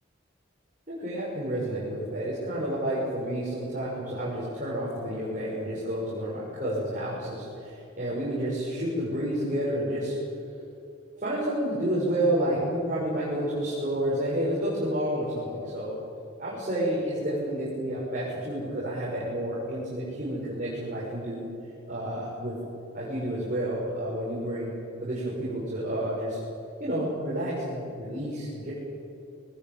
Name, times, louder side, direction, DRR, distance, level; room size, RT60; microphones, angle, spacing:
voice 1, 0.9-10.2 11.2-16.0 16.4-21.5 21.9-22.5 22.9-24.7 25.0-26.4 26.8-28.7, right 1 dB, 40° right, -8 dB, 6.7 m, -30 dB
24.0 x 20.0 x 9.2 m, 2.6 s
head